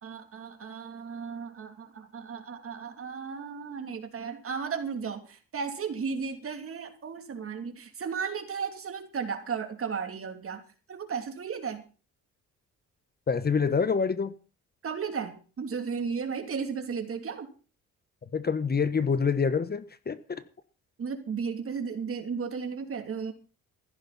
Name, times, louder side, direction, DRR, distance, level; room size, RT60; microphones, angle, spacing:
voice 1, 0.0-10.6 10.9-11.8 14.8-17.5 21.0-23.3, right 6 dB, 45° right, 3.0 m, -34 dB
voice 2, 13.3-14.3 18.3-20.4, left 5 dB, 30° left, 1.1 m, -26 dB
15.0 x 14.0 x 4.2 m
cardioid pair, 90°, 30 cm